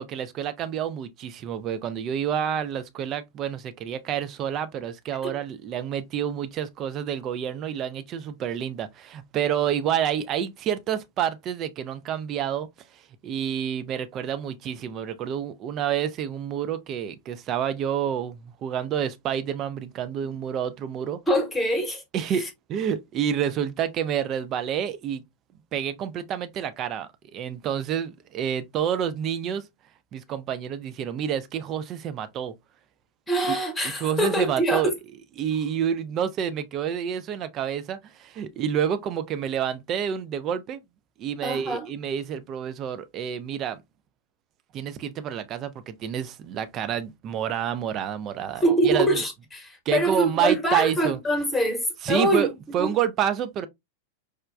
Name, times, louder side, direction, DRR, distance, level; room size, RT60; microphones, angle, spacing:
voice 1, 0.0-12.7 12.9-21.2 22.1-25.2 25.7-29.6 30.1-32.5 33.3-33.6 33.8-34.9 35.4-40.8 41.2-43.8 44.7-49.2 49.9-51.2 52.0-52.5 52.7-53.7, right 9 dB, 35° right, 0.4 m, -28 dB
voice 2, 21.3-22.0 33.3-34.9 41.4-41.9 48.6-52.5 52.8-52.9, right 1 dB, 10° left, 1.1 m, -24 dB
4.8 x 2.2 x 2.3 m
figure-of-eight pair, 90°, 0 cm